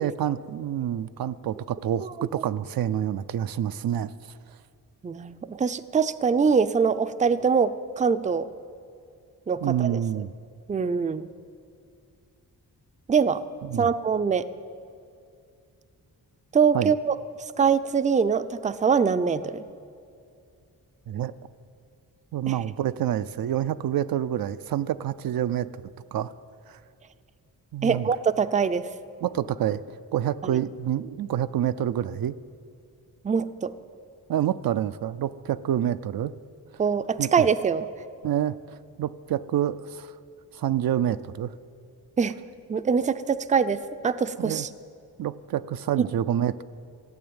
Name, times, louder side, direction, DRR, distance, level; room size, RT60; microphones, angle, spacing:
voice 1, 0.0-4.1 9.6-10.3 13.7-13.9 16.7-16.9 21.1-21.3 22.3-25.7 26.1-26.3 26.7-26.8 27.7-28.1 29.2-29.8 30.1-32.4 34.3-36.3 37.2-37.4 38.2-38.5 39.0-40.1 40.6-41.5 44.4-44.6 45.2-46.6, right 10 dB, 70° right, 12 dB, 0.5 m, -27 dB
voice 2, 5.0-8.5 9.5-10.0 10.7-11.3 13.1-13.4 13.8-14.5 16.5-17.2 17.6-19.6 27.8-28.8 30.4-30.5 33.2-33.7 36.8-37.9 42.2-42.4 42.7-44.7 46.0-46.1, right 6 dB, 20° right, 12 dB, 0.4 m, -23 dB
14.5 x 8.8 x 8.7 m, 2.4 s
cardioid pair, 90°, 37 cm